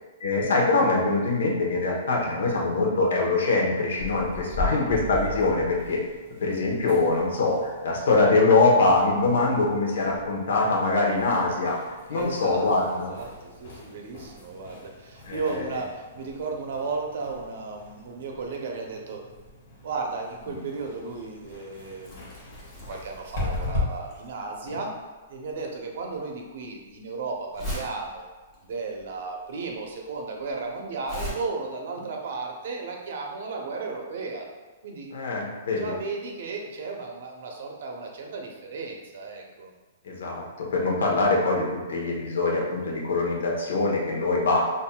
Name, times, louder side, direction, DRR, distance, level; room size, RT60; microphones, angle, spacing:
voice 1, 0.2-6.0 6.4-11.8 12.1-13.1 15.3-15.6 24.7-24.8 35.1-35.8 40.0-44.7, left 3 dB, 80° left, -1 dB, 0.9 m, -23 dB
sound 1, 4.0-23.8, left 2 dB, 45° left, 1.2 m, -39 dB
voice 2, 4.5-4.8 12.1-19.2 19.8-22.3 22.8-24.9 25.3-28.3 28.6-34.5 34.8-35.1 35.6-39.7, right 4 dB, 50° right, 1 dB, 0.6 m, -34 dB
Crumpling crinkling, 22.0-31.3, equal, ahead, 1.1 m, -40 dB
5.5 x 2.6 x 2.2 m, 1.3 s
hypercardioid pair, 175°, 0 cm